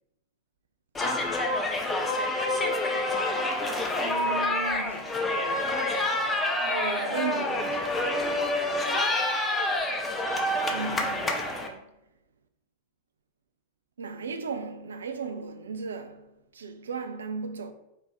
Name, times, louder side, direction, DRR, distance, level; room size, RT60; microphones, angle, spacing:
sound 1, 0.9-11.7, left 1 dB, 15° left, 0.6 m, -27 dB
voice 1, 4.0-5.1 6.6-8.0 10.7-11.9 14.0-17.7, right 5 dB, 70° right, 0.4 m, -36 dB
4.2 x 2.7 x 3.8 m
figure-of-eight pair, 90°, 0 cm